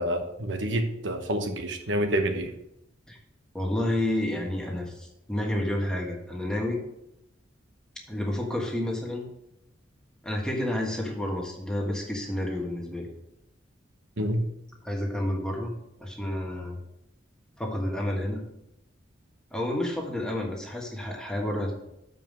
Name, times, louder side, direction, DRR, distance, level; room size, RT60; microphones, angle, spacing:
voice 1, 0.0-2.5 14.2-14.4, right 1 dB, 75° right, 5 dB, 1.1 m, -28 dB
voice 2, 3.5-6.8 8.1-9.3 10.2-13.1 14.8-15.7 16.0-16.8 17.6-18.4 19.5-21.7, left 1 dB, 5° left, 0 dB, 1.3 m, -30 dB
7.3 x 5.3 x 6.2 m, 0.82 s
head